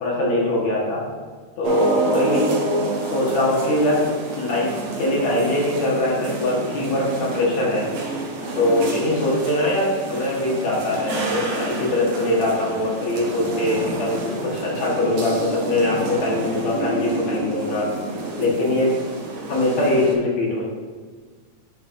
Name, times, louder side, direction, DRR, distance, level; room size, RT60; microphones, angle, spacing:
voice 1, 0.0-1.0 1.6-2.5 3.1-4.1 4.4-7.9 8.6-14.2 14.5-17.9 18.4-18.9 19.5-20.7, left 1 dB, 65° left, -5 dB, 2.5 m, -22 dB
sound 1, 1.6-20.2, right 2 dB, 65° right, 2.0 m, -28 dB
11.0 x 4.2 x 2.5 m, 1.5 s
omnidirectional pair, 3.5 m